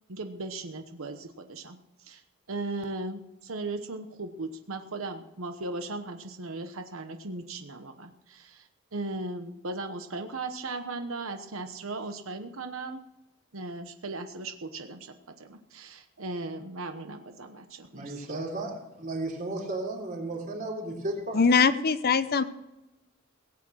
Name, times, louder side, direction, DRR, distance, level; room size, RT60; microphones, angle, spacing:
voice 1, 0.1-2.2 2.5-13.0 13.5-15.1 15.4-18.2, right 2 dB, 75° right, 7 dB, 1.1 m, -37 dB
voice 2, 17.9-21.4, right 2 dB, 40° right, 0 dB, 3.3 m, -34 dB
voice 3, 21.3-22.4, left 5 dB, 50° left, 13 dB, 0.7 m, -22 dB
17.5 x 8.7 x 6.4 m, 0.97 s
head